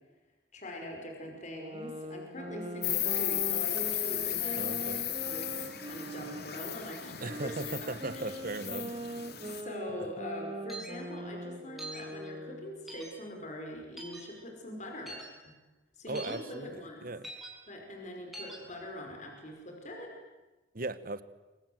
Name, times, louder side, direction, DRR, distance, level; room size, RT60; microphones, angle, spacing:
voice 1, 0.5-5.5 5.8-7.6 7.8-7.9 8.1-8.4 9.4-15.5 16.0-17.1 17.7-20.1, left 1 dB, 40° left, 2 dB, 5.5 m, -43 dB
sound 1, 1.6-6.8 7.3-12.9, right 1 dB, 30° right, 2.1 m, -42 dB
Insect, 2.8-9.6, left 12 dB, 60° left, 2.7 m, -35 dB
voice 2, 4.6-5.0 7.2-8.9 9.4-9.6 16.1-17.3 20.7-21.2, right 2 dB, 50° right, 14 dB, 1.4 m, -38 dB
sound 2, 10.7-10.9 11.8-12.0 12.9-13.1 14.0-14.2 15.1-15.3 16.1-16.4 17.2-17.5 18.3-18.6, right 2 dB, ahead, 6.8 m, -43 dB
28.5 x 26.0 x 8.0 m, 1.1 s
head